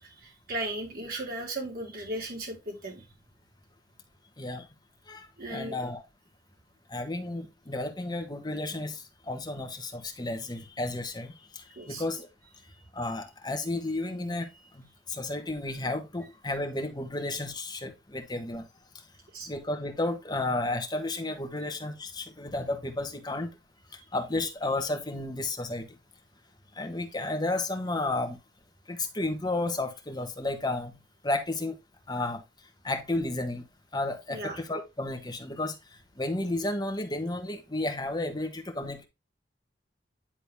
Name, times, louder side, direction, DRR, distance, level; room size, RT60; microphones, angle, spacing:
voice 1, 0.0-3.0 5.4-5.8 11.8-12.0 19.3-19.5 34.3-34.6, right 1 dB, 55° right, 3.5 m, -36 dB
voice 2, 4.4-4.7 5.1-6.0 6.9-12.3 12.9-18.6 19.5-23.5 23.9-25.9 26.7-28.4 28.9-31.8 32.1-32.4 32.8-33.6 33.9-35.8 36.2-39.0, left 2 dB, 25° left, 1.4 m, -32 dB
10.0 x 4.0 x 3.5 m
head